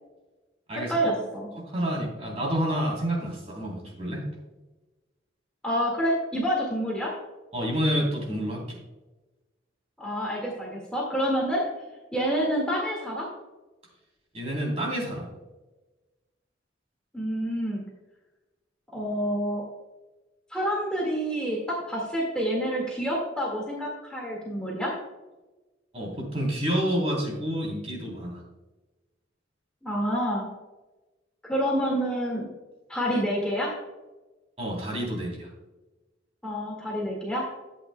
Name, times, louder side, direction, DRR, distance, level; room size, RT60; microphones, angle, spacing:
voice 1, 0.9-1.5 5.6-7.1 10.0-11.6 12.1-13.3 17.1-17.8 18.9-19.6 20.5-24.9 29.8-30.5 31.4-32.4 32.9-33.7 36.4-37.4, equal, 5° left, -4 dB, 1.8 m, -28 dB
voice 2, 1.5-4.2 7.5-8.8 14.3-15.3 25.9-28.4 34.6-35.5, equal, 35° right, -2 dB, 3.2 m, -29 dB
12.5 x 8.5 x 2.2 m, 1.1 s
head